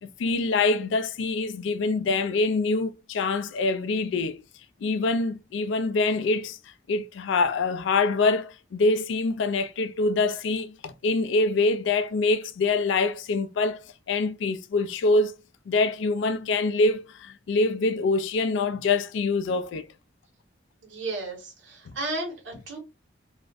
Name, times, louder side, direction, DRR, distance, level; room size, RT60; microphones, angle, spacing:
voice 1, 0.0-4.4 4.8-6.6 6.9-13.8 14.1-15.3 15.7-19.9 21.9-22.0, left 3 dB, 75° left, 0.3 m, -25 dB
voice 2, 20.8-22.8, right 2 dB, 85° right, 1.0 m, -34 dB
2.4 x 2.1 x 2.4 m
head